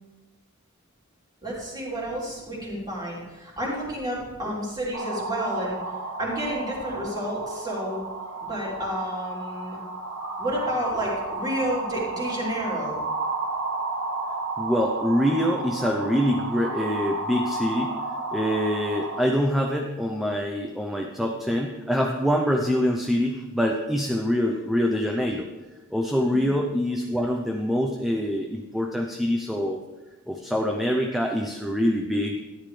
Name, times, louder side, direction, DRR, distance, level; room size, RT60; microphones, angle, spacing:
voice 1, 1.4-5.8 6.2-8.0 8.5-9.8 10.4-13.0 26.3-26.5, equal, 20° right, -5 dB, 3.3 m, -30 dB
sound 1, 4.9-19.2, right 2 dB, 85° right, 1.5 m, -32 dB
voice 2, 14.6-18.0 18.3-25.5 25.9-29.8 30.3-32.4, equal, ahead, 1 dB, 0.6 m, -25 dB
13.5 x 10.5 x 3.3 m, 1.1 s
head